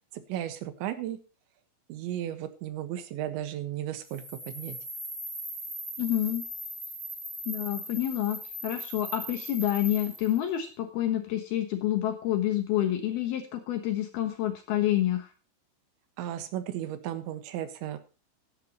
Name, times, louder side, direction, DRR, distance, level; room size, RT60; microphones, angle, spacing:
voice 1, 0.1-1.2 1.9-4.8 16.2-18.0, right 11 dB, 80° right, 10 dB, 3.7 m, -35 dB
sound 1, 4.1-10.4, right 1 dB, ahead, 6.9 m, -39 dB
voice 2, 6.0-6.4 7.5-15.3, left 13 dB, 70° left, 7 dB, 2.9 m, -28 dB
15.0 x 11.5 x 3.0 m, 0.33 s
omnidirectional pair, 5.2 m